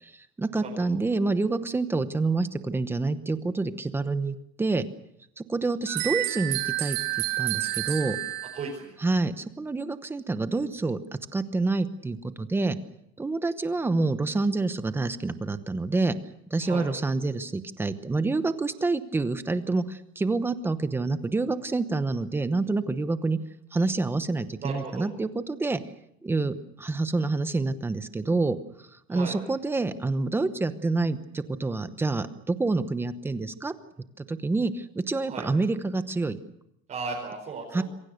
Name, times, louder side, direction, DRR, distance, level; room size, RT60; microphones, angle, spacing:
voice 1, 0.0-4.8 5.4-7.0 7.4-8.2 9.0-11.0 11.3-12.8 13.2-16.2 16.5-23.4 23.7-25.8 26.2-28.6 29.1-33.7 34.2-36.4 37.7-37.8, right 3 dB, 10° right, 11 dB, 0.9 m, -27 dB
sound 1, 5.9-8.7, right 18 dB, 80° right, 4.1 m, -29 dB
voice 2, 8.5-8.9 16.6-16.9 24.6-25.1 29.1-29.4 35.2-35.5 36.9-37.8, right 4 dB, 25° right, -2 dB, 4.9 m, -35 dB
27.0 x 23.0 x 6.5 m, 0.76 s
cardioid pair, 175°, 29 cm